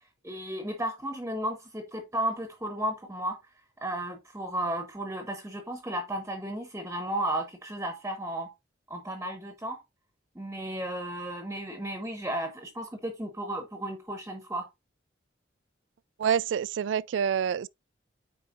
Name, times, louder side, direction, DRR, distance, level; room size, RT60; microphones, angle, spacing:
voice 1, 0.2-3.4 3.8-8.5 8.9-9.8 10.3-14.7, right 1 dB, 10° right, 0.9 m, -34 dB
voice 2, 16.2-17.7, right 8 dB, 70° right, 0.3 m, -27 dB
8.6 x 4.6 x 2.5 m
head